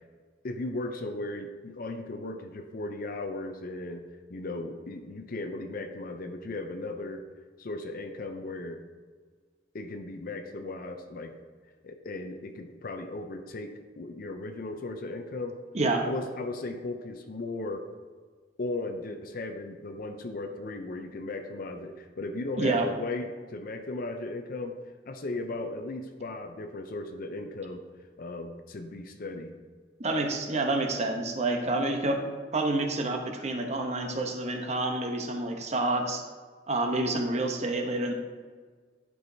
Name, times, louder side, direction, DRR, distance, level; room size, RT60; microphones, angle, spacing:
voice 1, 0.4-4.0 4.3-7.2 7.6-8.8 9.7-11.3 11.8-15.5 16.0-17.8 18.6-24.7 25.1-27.8 28.2-29.6, left 2 dB, 50° left, 6 dB, 0.5 m, -36 dB
voice 2, 22.6-22.9 30.0-32.3 32.5-36.2 36.7-38.1, right 2 dB, 35° right, 3 dB, 0.8 m, -28 dB
10.5 x 4.7 x 2.7 m, 1.5 s
head